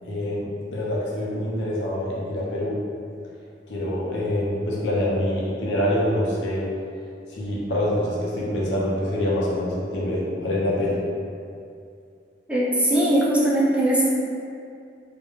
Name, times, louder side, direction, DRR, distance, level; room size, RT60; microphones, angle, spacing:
voice 1, 0.0-2.8 3.7-6.7 7.3-11.0, left 1 dB, 90° left, -5 dB, 0.6 m, -25 dB
voice 2, 12.5-14.0, right 1 dB, 5° right, -7 dB, 0.3 m, -20 dB
2.4 x 2.1 x 2.9 m, 2.4 s
head